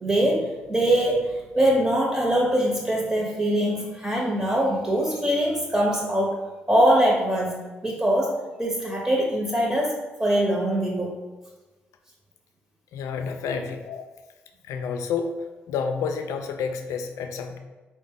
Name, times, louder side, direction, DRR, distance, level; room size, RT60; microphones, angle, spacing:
voice 1, 0.0-6.4 6.7-7.6 7.8-11.2 13.5-13.6, right 1 dB, 20° right, -2 dB, 0.9 m, -23 dB
voice 2, 12.9-14.0 14.7-15.3 15.7-17.6, left 6 dB, 75° left, 6 dB, 0.3 m, -29 dB
3.9 x 2.1 x 3.6 m, 1.2 s
hypercardioid pair, 45°, 6 cm